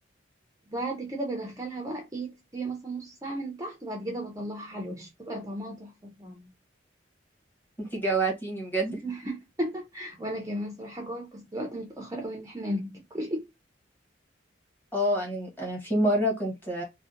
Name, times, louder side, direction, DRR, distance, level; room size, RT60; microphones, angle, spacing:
voice 1, 0.7-6.4 9.0-13.5, right 1 dB, 15° right, 0.5 m, -35 dB
voice 2, 7.8-9.0 14.9-16.8, right 1 dB, 10° left, 0.9 m, -27 dB
2.7 x 2.1 x 2.4 m
head